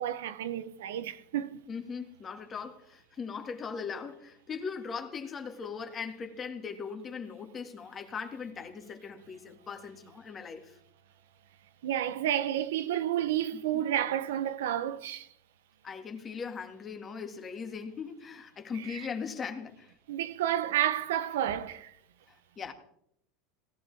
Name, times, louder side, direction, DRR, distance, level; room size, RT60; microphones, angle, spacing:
voice 1, 0.0-1.6 11.8-15.3 18.9-19.1 20.1-21.9, right 11 dB, 85° right, 0.8 m, -30 dB
voice 2, 1.7-10.8 13.5-13.8 15.8-19.9 22.3-22.7, left 6 dB, 30° left, 2.0 m, -39 dB
17.5 x 13.5 x 3.5 m
supercardioid pair, 115°, 0 cm